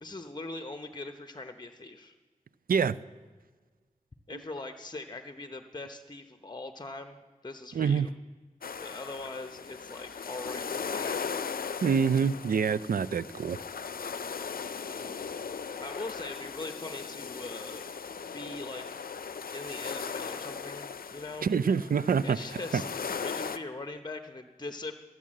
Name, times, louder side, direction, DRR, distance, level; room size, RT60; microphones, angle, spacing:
voice 1, 0.0-2.1 4.3-8.1 8.8-11.3 15.5-17.9 18.3-18.9 19.5-21.5 22.2-25.0, left 2 dB, 30° left, 7 dB, 0.8 m, -41 dB
voice 2, 7.7-8.1 11.8-13.6 21.4-22.4 22.7-22.8, right 6 dB, 75° right, 16 dB, 0.4 m, -26 dB
sound 1, 8.6-23.6, left 6 dB, 85° left, 0.5 m, -38 dB
13.5 x 9.4 x 7.5 m, 1.4 s
cardioid pair, 45°, 15 cm